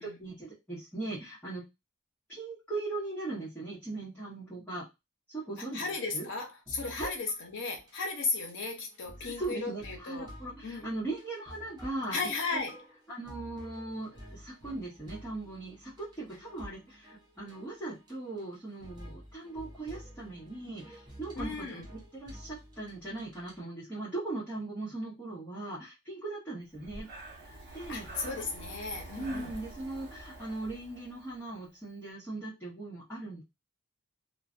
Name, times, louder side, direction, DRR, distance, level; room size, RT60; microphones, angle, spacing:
voice 1, 0.0-1.6 2.3-4.8 5.3-5.9 6.1-6.3 7.0-7.1 9.2-12.6 13.1-21.8 22.1-27.1 27.4-28.1 29.2-33.4, right 2 dB, 5° left, 0.9 m, -39 dB
voice 2, 5.7-10.3 10.6-10.8 12.1-12.8 21.4-21.9 27.9-29.6, left 3 dB, 55° left, 0.7 m, -35 dB
sound 1, 6.7-7.4 7.7-7.9 8.3-23.6, equal, 20° right, 0.7 m, -50 dB
Breathing, 26.7-31.7, right 2 dB, 45° right, 0.9 m, -47 dB
2.4 x 2.1 x 2.4 m
head